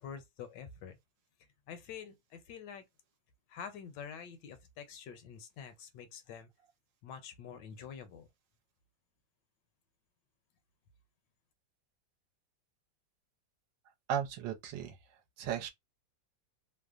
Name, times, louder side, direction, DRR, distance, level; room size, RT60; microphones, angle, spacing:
voice 1, 0.0-1.0 1.7-2.8 3.5-6.5 7.0-8.3, left 7 dB, 75° left, 1.2 m, -47 dB
voice 2, 14.1-15.0 15.4-15.7, right 9 dB, 75° right, 1.3 m, -35 dB
3.1 x 2.0 x 2.4 m
omnidirectional pair, 2.0 m